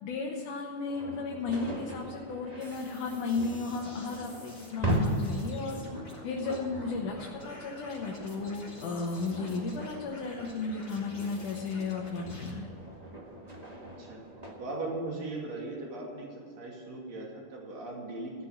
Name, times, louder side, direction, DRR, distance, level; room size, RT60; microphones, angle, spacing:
voice 1, 0.0-5.8 6.2-12.7, left 4 dB, 75° left, -1 dB, 2.6 m, -34 dB
sound 1, 0.9-14.5, right 1 dB, 25° right, 0.8 m, -39 dB
sound 2, 2.6-12.5, left 1 dB, 15° left, 3.2 m, -51 dB
voice 2, 14.6-16.3 16.6-18.3, right 2 dB, 55° right, -2 dB, 3.7 m, -38 dB
16.0 x 6.8 x 8.7 m, 2.2 s
omnidirectional pair, 3.7 m